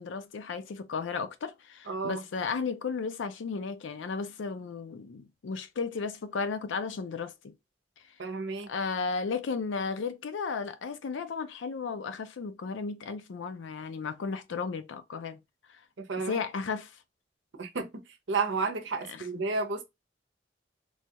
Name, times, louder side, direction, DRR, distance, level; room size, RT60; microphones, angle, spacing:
voice 1, 0.0-7.5 8.7-15.4 15.7-15.8 16.3-16.9 19.1-19.3, left 5 dB, 90° left, 0.4 m, -34 dB
voice 2, 1.9-2.2 8.2-8.7 16.0-16.4 17.6-19.8, right 4 dB, 80° right, 0.7 m, -32 dB
3.0 x 2.3 x 2.8 m
head